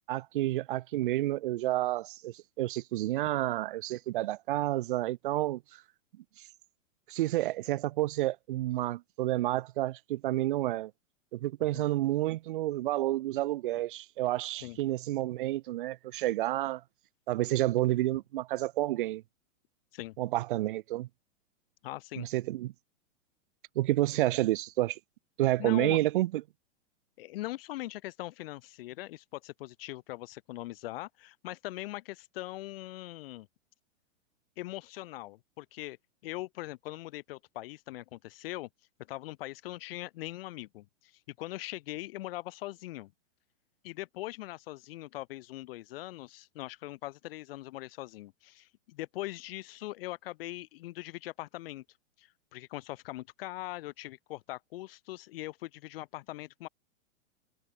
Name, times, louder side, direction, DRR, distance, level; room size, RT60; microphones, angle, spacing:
voice 1, 0.1-5.6 7.1-10.9 11.3-16.8 17.3-19.2 20.2-21.1 22.2-22.7 23.8-25.0 25.4-26.4, right 16 dB, 45° right, 0.5 m, -30 dB
voice 2, 21.8-22.3 25.6-26.0 27.2-33.5 34.6-36.0 36.2-38.7 39.1-43.1 43.8-51.8 52.2-56.7, left 17 dB, 45° left, 1.6 m, -41 dB
hypercardioid pair, 155°, 39 cm